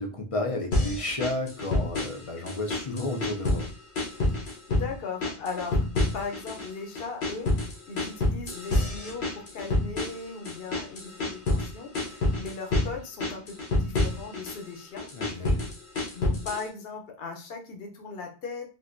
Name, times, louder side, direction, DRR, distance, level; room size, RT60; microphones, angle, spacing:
voice 1, 0.0-3.7 15.1-15.7, left 2 dB, 40° left, 2 dB, 0.5 m, -32 dB
sound 1, 0.7-2.2 2.5-3.7 4.0-4.9 5.2-6.7 7.0-11.7 11.9-12.9 13.2-14.6 15.0-16.7, left 2 dB, 90° left, 1.2 m, -27 dB
voice 2, 4.4-5.8 6.1-15.1 15.3-15.6 16.1-18.7, left 4 dB, 70° left, 3 dB, 0.9 m, -38 dB
3.6 x 2.5 x 2.5 m, 0.34 s
omnidirectional pair, 1.0 m